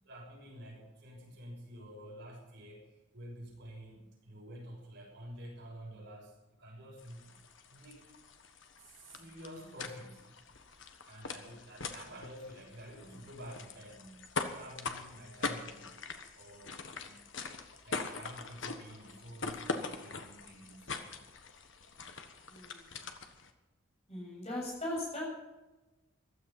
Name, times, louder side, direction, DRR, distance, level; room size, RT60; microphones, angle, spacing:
voice 1, 0.0-7.3 7.7-8.0 8.8-10.3 11.0-15.9 16.3-17.2 17.8-21.1, equal, 55° right, -2 dB, 6.6 m, -50 dB
sound 1, 7.0-23.5, left 4 dB, 60° left, 1.4 m, -43 dB
voice 2, 22.5-23.0 24.1-25.2, left 1 dB, 30° left, -3 dB, 7.3 m, -39 dB
15.5 x 12.5 x 5.8 m, 1.1 s
head